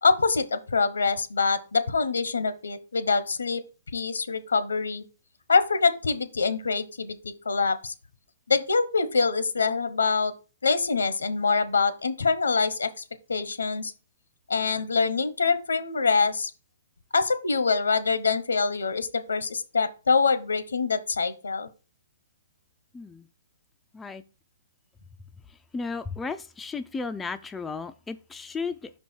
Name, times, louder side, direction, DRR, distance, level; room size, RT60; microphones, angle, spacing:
voice 1, 0.0-3.6 3.9-5.0 5.5-7.9 8.5-10.3 10.6-13.0 13.3-13.9 14.5-16.5 17.1-21.7, left 4 dB, 90° left, 13 dB, 0.8 m, -25 dB
voice 2, 22.9-23.3 23.9-24.2 25.7-28.9, left 4 dB, 10° left, 7 dB, 0.3 m, -34 dB
5.4 x 4.6 x 4.3 m, 0.34 s
hypercardioid pair, 145°, 0 cm